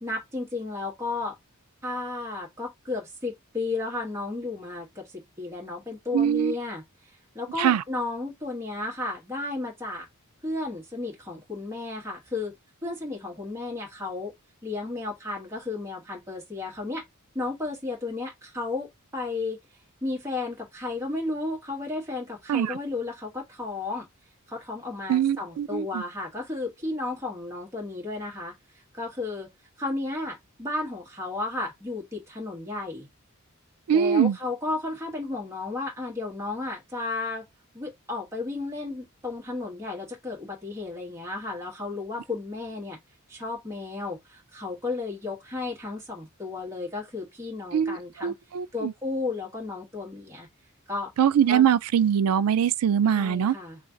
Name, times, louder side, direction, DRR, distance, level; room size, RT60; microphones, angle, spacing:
voice 1, 0.0-1.3 1.8-6.8 7.3-10.1 10.4-12.5 12.8-14.3 14.6-17.0 17.3-19.6 20.0-24.0 24.5-28.5 28.9-29.5 29.8-33.1 33.9-37.5 37.7-43.0 43.3-48.4 48.7-50.5 50.9-51.1 51.5-51.7 53.0-53.8, left 3 dB, 15° right, 1.4 m, -33 dB
voice 2, 6.1-6.5 7.6-7.8 22.5-22.8 25.1-26.0 33.9-34.4 47.7-48.9 51.2-53.5, right 8 dB, 85° right, 0.3 m, -23 dB
3.1 x 2.4 x 3.8 m
head